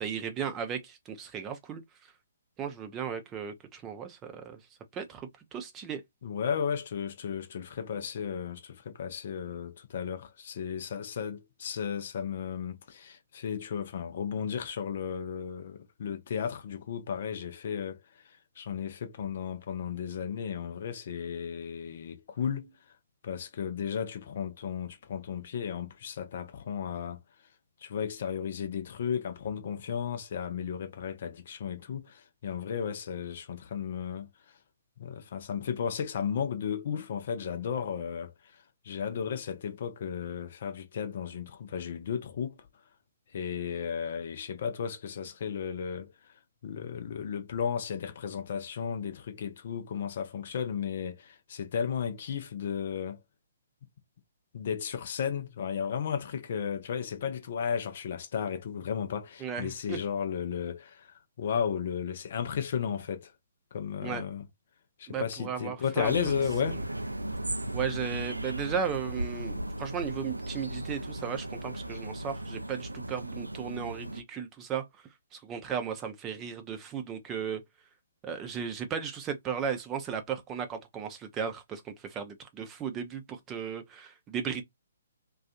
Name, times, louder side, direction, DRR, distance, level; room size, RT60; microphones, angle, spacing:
voice 1, 0.0-1.8 2.6-4.6 4.9-6.0 59.4-60.0 64.0-64.3 65.1-66.1 67.7-74.9 75.3-77.6 78.2-84.6, right 7 dB, 20° right, 0.6 m, -35 dB
voice 2, 6.2-18.0 18.2-22.7 23.2-27.2 27.8-34.6 35.0-42.6 43.3-46.3 46.6-53.2 54.5-63.3 63.7-64.5 65.0-66.8, left 7 dB, 50° left, 0.5 m, -34 dB
sound 1, 66.0-74.2, right 1 dB, 85° right, 0.4 m, -36 dB
2.5 x 2.3 x 2.4 m
figure-of-eight pair, 130°, 0 cm